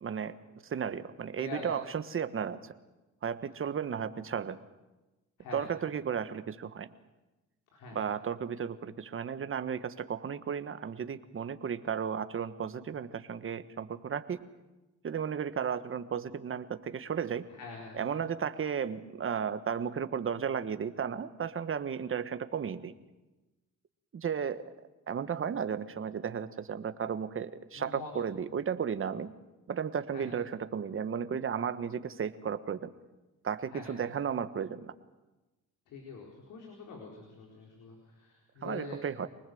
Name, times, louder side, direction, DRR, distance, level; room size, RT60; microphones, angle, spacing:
voice 1, 0.0-0.4 0.6-2.7 3.2-4.6 5.5-6.9 7.9-14.5 15.0-17.4 17.9-22.9 24.1-24.7 25.1-29.3 29.7-32.9 33.4-34.9 38.6-39.3, right 7 dB, 45° right, 11 dB, 1.4 m, -34 dB
voice 2, 1.4-1.7 5.4-5.6 7.7-8.0 17.5-18.2 27.7-28.1 30.1-30.3 33.7-34.1 35.9-39.0, left 4 dB, 85° left, 0 dB, 4.4 m, -45 dB
25.0 x 19.5 x 7.9 m, 1.1 s
cardioid pair, 90°, 30 cm